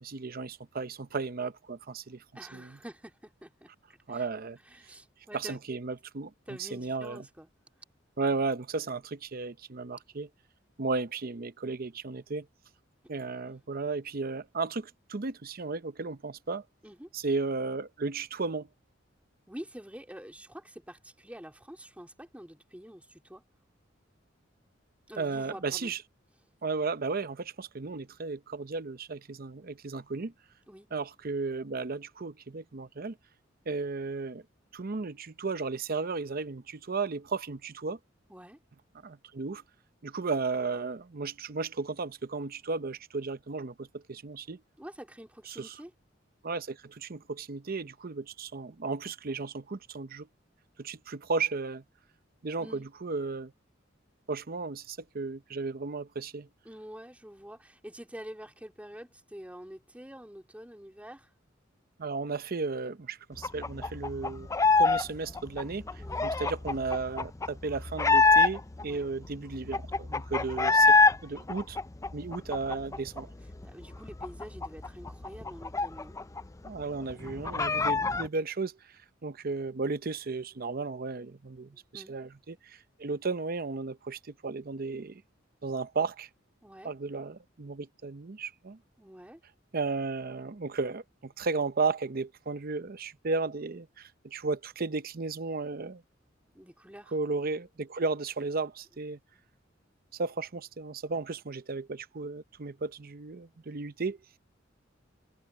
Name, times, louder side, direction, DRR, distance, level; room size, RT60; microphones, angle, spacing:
voice 1, 0.0-2.2 2.5-2.8 4.1-4.6 5.3-7.2 8.2-10.3 10.8-12.5 13.1-16.6 17.1-18.7 25.2-26.0 26.6-30.3 30.9-33.2 33.7-34.4 34.7-38.0 39.0-39.6 40.0-44.6 45.5-45.8 46.4-50.3 50.8-51.8 52.4-53.5 54.3-56.5 62.0-71.0 71.2-71.8 72.1-73.3 76.6-85.2 85.6-86.3 86.8-88.8 89.7-96.0 97.1-99.2 100.1-104.2, right 4 dB, 50° right, 0.7 m, -34 dB
voice 2, 2.3-3.7 4.1-4.2 4.7-5.6 6.5-7.5 16.8-17.1 19.5-23.4 25.1-25.9 30.7-30.9 38.3-38.6 44.8-45.9 52.6-52.9 56.6-61.3 65.9-66.2 68.8-69.1 73.6-76.2 81.9-82.2 86.6-86.9 89.0-89.4 96.5-97.1, equal, 5° right, 3.0 m, -47 dB
sound 1, 63.4-65.0 65.3-68.8 69.2-69.3 69.5-71.2 71.5-73.2 73.5-73.6 73.9-76.4 76.7-76.8 77.1-78.3, left 4 dB, 15° left, 0.4 m, -25 dB
head